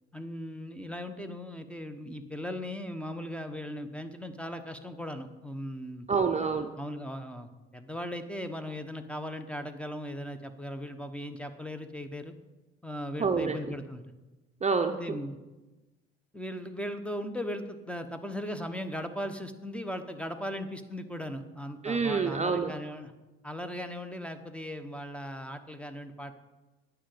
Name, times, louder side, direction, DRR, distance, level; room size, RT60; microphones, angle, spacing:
voice 1, 0.1-6.1 6.8-12.3 12.8-14.0 15.0-15.4 16.3-23.1 23.4-26.3, equal, 5° left, 9 dB, 1.2 m, -38 dB
voice 2, 6.1-6.7 13.2-13.7 14.6-15.2 21.8-22.7, right 5 dB, 25° right, 5 dB, 0.8 m, -27 dB
10.0 x 6.1 x 7.9 m, 1.1 s
hypercardioid pair, 60°, 29 cm